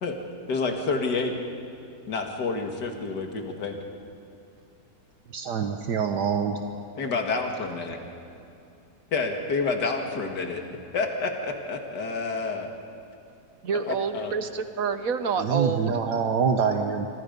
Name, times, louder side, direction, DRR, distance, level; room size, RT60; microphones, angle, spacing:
voice 1, 0.5-1.3 2.1-3.8 7.0-8.0 9.1-10.6 10.9-12.7 13.9-14.3, left 4 dB, 70° left, 3 dB, 2.6 m, -28 dB
voice 2, 5.3-6.6 15.4-17.1, right 6 dB, 70° right, 5 dB, 1.7 m, -25 dB
voice 3, 13.6-16.0, right 5 dB, 55° right, 9 dB, 1.4 m, -28 dB
27.0 x 26.0 x 5.4 m, 2.7 s
omnidirectional pair, 1.9 m